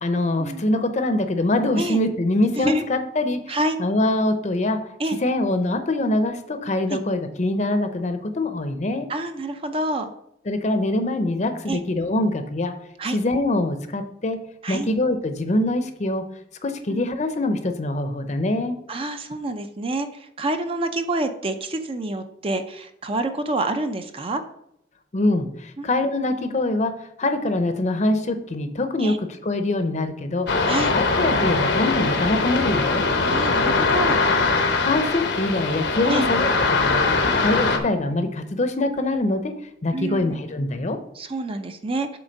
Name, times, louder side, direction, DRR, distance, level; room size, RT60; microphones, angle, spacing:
voice 1, 0.0-4.8 5.2-9.1 10.5-12.7 13.1-14.4 14.7-16.2 16.6-18.7 25.1-26.9 27.2-30.5 30.9-33.1 34.8-39.5 39.8-41.0, left 2 dB, 40° left, 8 dB, 0.7 m, -24 dB
voice 2, 3.5-3.8 5.0-5.2 6.9-7.0 9.1-10.1 11.7-11.8 13.0-13.2 14.6-14.9 16.9-17.1 18.9-24.4 25.8-25.9 29.0-29.2 30.7-30.9 33.2-34.2 36.0-36.3 37.3-37.5 39.9-40.4 41.2-42.2, right 2 dB, 30° right, 8 dB, 0.5 m, -27 dB
sound 1, 30.5-37.8, left 3 dB, 80° left, 0.9 m, -21 dB
7.7 x 3.5 x 5.2 m, 0.77 s
head